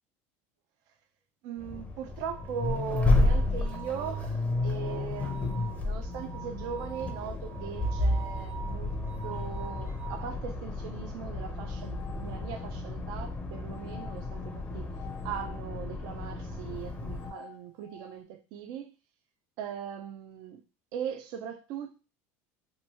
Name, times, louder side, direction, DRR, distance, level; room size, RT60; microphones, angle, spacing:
voice 1, 1.4-8.9 9.2-14.9 15.2-18.9 19.6-20.6 20.9-22.1, right 8 dB, 65° right, 0.5 m, -39 dB
Accelerating revving vroom, 1.6-17.3, left 2 dB, 15° left, 0.5 m, -32 dB
sound 1, 2.3-10.4 11.6-12.9 13.6-15.6 16.8-18.2, right 5 dB, 35° right, 0.8 m, -48 dB
2.8 x 2.2 x 2.8 m
supercardioid pair, 125°, 7 cm